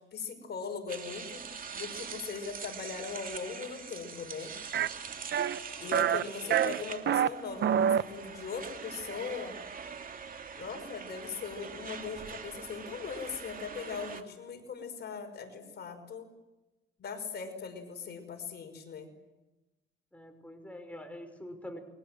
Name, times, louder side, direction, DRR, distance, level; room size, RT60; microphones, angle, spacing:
voice 1, 0.1-1.5 1.7-4.5 5.8-9.6 10.6-16.3 17.0-19.1, left 5 dB, 55° left, 5 dB, 5.8 m, -40 dB
sound 1, 0.9-14.2, right 6 dB, 45° right, 2.8 m, -44 dB
sound 2, 4.7-4.9 5.3-5.6 5.9-6.2 6.5-7.3 7.6-8.0, right 9 dB, 60° right, 1.0 m, -26 dB
voice 2, 20.1-21.8, equal, 5° left, 6 dB, 5.4 m, -45 dB
29.0 x 23.0 x 7.9 m, 1.0 s
cardioid pair, 90°, 20 cm